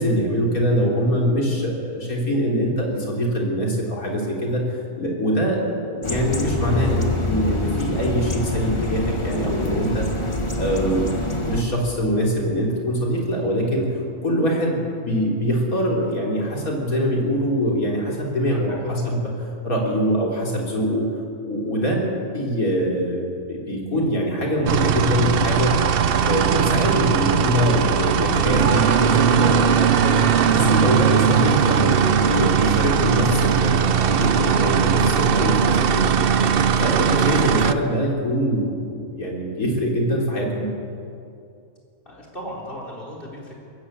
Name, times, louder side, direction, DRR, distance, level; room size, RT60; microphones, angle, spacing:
voice 1, 0.0-10.3 10.6-13.9 14.2-19.2 19.6-21.1 21.4-22.0 22.3-30.2 30.5-36.2 36.5-40.7, equal, 65° left, -1 dB, 4.0 m, -23 dB
sound 1, 6.0-11.6, left 2 dB, 20° left, 1.7 m, -26 dB
voice 2, 18.5-19.0 42.0-43.5, equal, 35° left, -3 dB, 4.5 m, -36 dB
sound 2, 24.7-37.7, right 7 dB, 55° right, 0.7 m, -19 dB
22.0 x 14.0 x 8.6 m, 2.5 s
omnidirectional pair, 1.6 m